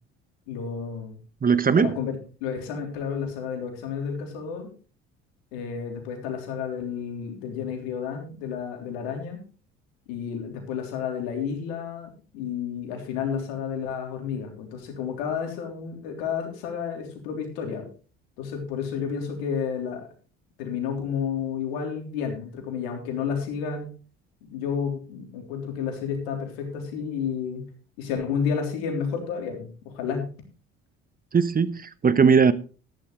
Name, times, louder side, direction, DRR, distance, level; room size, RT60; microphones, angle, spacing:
voice 1, 0.5-1.2 1.8-4.7 5.5-9.4 10.1-17.9 18.4-20.0 20.6-23.9 24.4-27.6 28.0-30.3, left 7 dB, 80° left, 3 dB, 3.5 m, -31 dB
voice 2, 1.4-1.9 31.3-32.5, right 6 dB, 30° right, 15 dB, 1.0 m, -19 dB
13.5 x 11.5 x 3.2 m, 0.36 s
hypercardioid pair, 60°, 31 cm